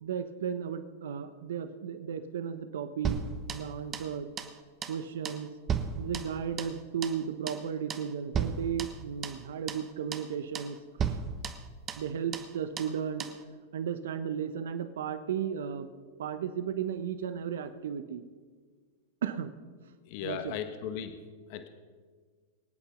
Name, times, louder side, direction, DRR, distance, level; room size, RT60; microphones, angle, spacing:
voice 1, 0.0-3.2 3.5-4.4 4.9-5.5 6.0-10.8 11.0-11.2 12.0-13.3 13.7-15.9 16.2-18.2 19.2-19.5 20.2-20.5, right 8 dB, 80° right, 11 dB, 1.0 m, -34 dB
sound 1, 3.0-4.1 4.4-4.6 4.8-5.0 5.2-6.8 7.0-7.2 7.5-7.6 7.9-8.1 8.3-9.4 9.7-9.8 10.1-10.3 10.5-10.7 11.0-12.1 12.3-12.5 12.8-12.9 13.2-13.4, right 7 dB, 30° right, 1.3 m, -35 dB
voice 2, 20.1-21.1 21.5-21.7, left 9 dB, 55° left, 7 dB, 1.4 m, -36 dB
25.0 x 8.5 x 5.2 m, 1.5 s
hypercardioid pair, 115°, 0 cm